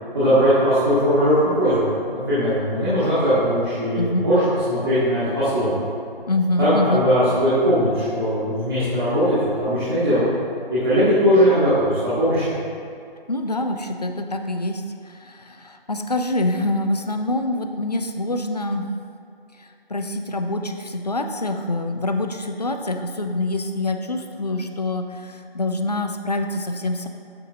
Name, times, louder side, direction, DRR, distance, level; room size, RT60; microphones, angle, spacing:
voice 1, 0.1-5.8 6.6-10.2 10.7-12.4, equal, 25° right, -14 dB, 1.4 m, -19 dB
voice 2, 4.0-4.3 6.3-7.0 13.3-18.9 19.6-27.1, left 2 dB, 45° left, 6 dB, 0.4 m, -25 dB
8.6 x 4.7 x 2.6 m, 2.4 s
figure-of-eight pair, 155°, 30 cm